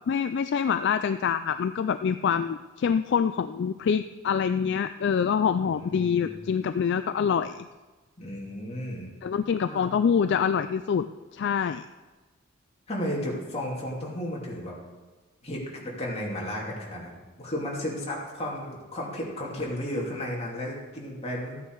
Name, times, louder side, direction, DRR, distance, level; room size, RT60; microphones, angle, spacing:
voice 1, 0.1-7.7 9.2-11.1 11.3-11.9, left 7 dB, 55° left, 11 dB, 0.3 m, -25 dB
voice 2, 5.6-6.4 8.2-9.1 9.7-9.9 12.9-14.7 15.4-21.6, left 1 dB, 30° left, -4 dB, 2.7 m, -34 dB
14.0 x 9.4 x 4.7 m, 1.2 s
head